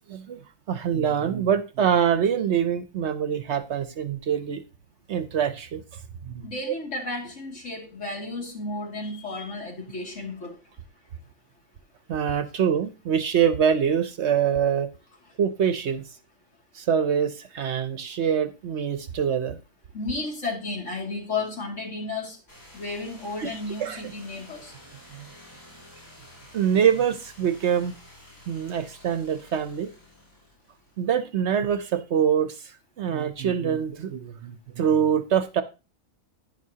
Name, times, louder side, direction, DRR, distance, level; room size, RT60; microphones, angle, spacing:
voice 1, 0.1-0.4 0.7-4.6 5.1-5.8 6.3-6.4 12.1-14.9 15.4-16.0 16.7-19.6 23.4-23.5 23.8-24.1 25.1-25.3 26.5-27.9 28.5-29.9 31.0-32.7 33.0-35.6, right 8 dB, 60° right, 0.9 m, -24 dB
voice 2, 6.4-10.6 19.9-22.4 22.7-24.7, left 3 dB, 60° left, 2.7 m, -33 dB
sound 1, 22.5-31.2, left 1 dB, 75° left, 6.5 m, -50 dB
11.0 x 9.8 x 2.8 m
omnidirectional pair, 1.4 m